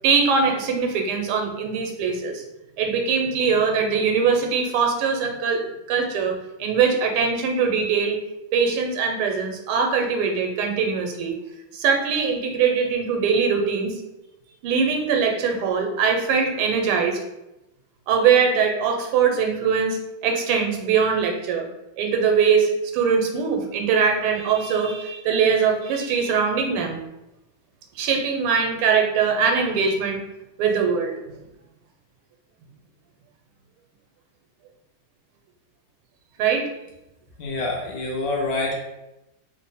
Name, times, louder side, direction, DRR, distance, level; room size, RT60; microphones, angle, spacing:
voice 1, 0.0-2.4 2.8-8.2 8.5-11.4 11.7-13.9 14.6-17.2 18.1-21.7 22.0-27.0 28.0-30.2 30.6-31.2 36.4-36.7, right 6 dB, 85° right, 3 dB, 1.5 m, -22 dB
voice 2, 37.4-38.8, left 2 dB, 80° left, -2 dB, 0.8 m, -26 dB
3.5 x 2.1 x 4.0 m, 0.93 s
omnidirectional pair, 2.3 m